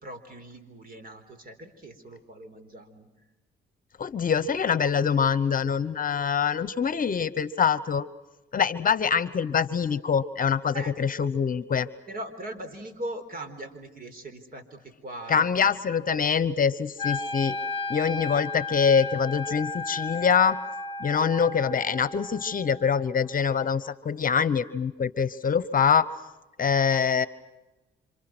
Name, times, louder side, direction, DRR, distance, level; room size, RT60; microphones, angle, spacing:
voice 1, 0.0-3.1 10.7-10.9 12.1-15.7, right 1 dB, 45° right, 9 dB, 4.1 m, -40 dB
voice 2, 4.0-8.1 8.5-11.9 15.3-17.6 17.9-20.6 21.0-26.1 26.6-27.3, left 6 dB, 45° left, 17 dB, 1.0 m, -24 dB
Wind instrument woodwind instrument, 17.0-23.1, left 3 dB, 25° left, 1.2 m, -34 dB
28.5 x 26.5 x 6.2 m, 1.1 s
cardioid pair, 90°, 20 cm